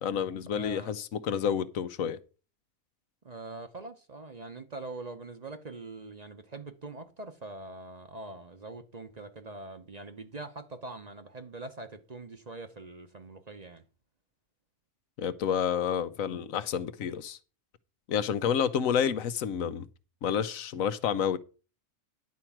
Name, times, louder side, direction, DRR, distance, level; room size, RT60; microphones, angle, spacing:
voice 1, 0.0-2.2 15.2-17.4 18.1-19.9 20.2-21.4, left 8 dB, 80° left, 1.1 m, -29 dB
voice 2, 0.5-0.9 3.2-13.8, right 2 dB, 35° right, 0.9 m, -43 dB
11.0 x 4.5 x 7.2 m
omnidirectional pair, 1.4 m